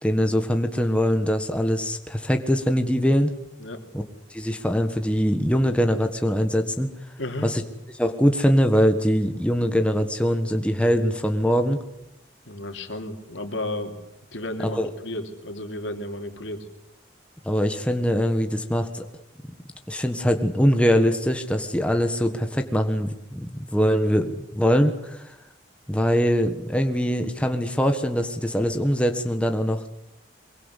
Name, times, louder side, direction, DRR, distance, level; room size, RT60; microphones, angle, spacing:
voice 1, 0.0-3.3 3.9-4.0 4.3-6.9 7.4-7.6 7.9-11.8 14.7-14.9 17.4-19.0 19.9-25.3 25.9-29.8, equal, 5° left, 6 dB, 1.4 m, -22 dB
voice 2, 7.2-7.5 12.4-14.0 14.3-16.7, left 1 dB, 80° left, 5 dB, 3.0 m, -33 dB
23.5 x 22.5 x 8.3 m, 0.85 s
head